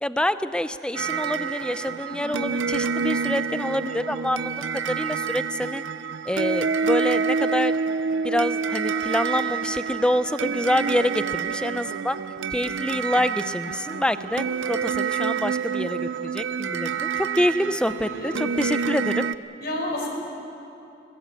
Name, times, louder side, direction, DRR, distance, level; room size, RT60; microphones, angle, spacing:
voice 1, 0.0-5.8 6.3-7.8 8.2-12.2 12.5-19.3, left 1 dB, 5° left, 12 dB, 0.5 m, -26 dB
sound 1, 0.9-19.3, right 5 dB, 85° right, 0.6 m, -28 dB
voice 2, 18.0-18.5 19.6-20.1, left 1 dB, 55° left, 1 dB, 4.8 m, -31 dB
21.0 x 20.0 x 8.3 m, 2.8 s
head